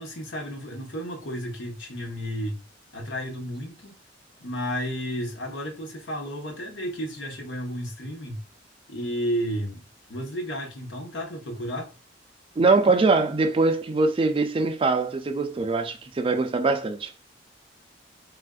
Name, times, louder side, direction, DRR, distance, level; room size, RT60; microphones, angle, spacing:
voice 1, 0.0-2.6 2.9-3.9 4.4-8.4 8.9-11.9, equal, 85° left, 1.0 m, -32 dB
voice 2, 12.6-17.1, right 3 dB, 30° right, 0.4 m, -22 dB
3.4 x 2.4 x 2.3 m
head